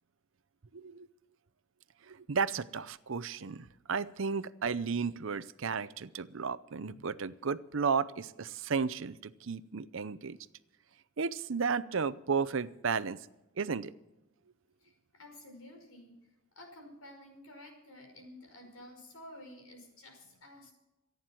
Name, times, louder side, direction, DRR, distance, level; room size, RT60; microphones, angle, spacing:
voice 1, 0.7-1.1 2.1-10.4 11.2-13.2 13.6-13.9, right 5 dB, 65° right, 15 dB, 0.6 m, -33 dB
voice 2, 14.8-16.2 16.5-20.7, left 1 dB, 85° left, 3 dB, 5.3 m, -52 dB
27.0 x 9.4 x 4.4 m, 0.98 s
head